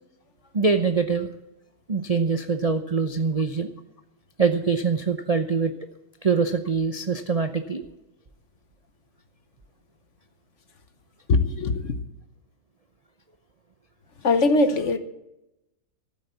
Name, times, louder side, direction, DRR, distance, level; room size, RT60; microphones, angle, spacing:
voice 1, 0.5-1.3 1.9-3.7 4.4-5.7 6.2-7.8, right 5 dB, 55° right, 8 dB, 0.4 m, -23 dB
voice 2, 11.3-11.9 14.2-15.0, left 3 dB, 50° left, 10 dB, 1.2 m, -21 dB
14.5 x 8.3 x 8.2 m, 0.90 s
omnidirectional pair, 1.9 m